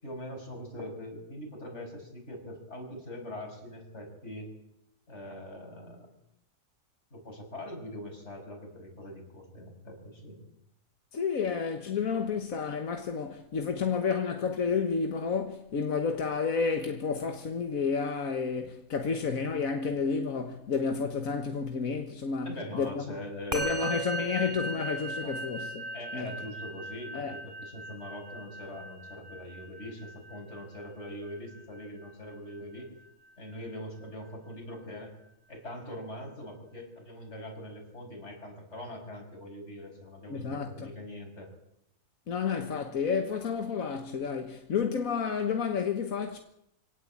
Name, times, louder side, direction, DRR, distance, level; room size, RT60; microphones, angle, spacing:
voice 1, 0.0-4.5 5.1-6.1 7.1-10.5 22.4-23.7 25.2-25.4 25.9-32.9 33.4-35.1 35.5-41.5, left 1 dB, 55° left, 6.6 m, -42 dB
voice 2, 11.1-23.0 23.5-25.8 26.1-26.3 27.1-27.3 40.3-40.9 42.3-46.4, left 5 dB, 85° left, 1.8 m, -30 dB
Musical instrument, 23.5-33.1, right 2 dB, 40° right, 4.8 m, -38 dB
25.0 x 17.5 x 8.7 m
omnidirectional pair, 1.4 m